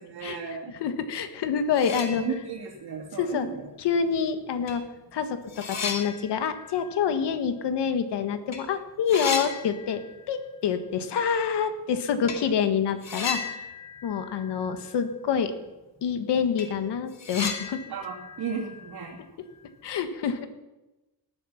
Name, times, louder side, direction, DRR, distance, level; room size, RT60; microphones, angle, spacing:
voice 1, 0.0-0.7 2.2-3.7 17.9-19.2, right 6 dB, 70° right, -3 dB, 2.7 m, -34 dB
voice 2, 0.8-2.2 3.2-3.5 3.8-4.8 5.1-10.0 10.3-13.6 14.0-15.5 16.0-17.8 19.8-20.5, left 7 dB, 85° left, 9 dB, 1.7 m, -27 dB
sound 1, 1.4-1.5 1.7-2.8 3.1-3.2 4.2-4.3 4.7-8.1 8.4-8.6 8.9-10.4 10.7-10.8 12.3-12.5 13.0-15.2 15.4-15.5 16.0-16.1 16.4-19.6, left 5 dB, 40° left, 2.4 m, -36 dB
18.0 x 11.5 x 5.9 m, 1.0 s
wide cardioid pair, 160°, 41 cm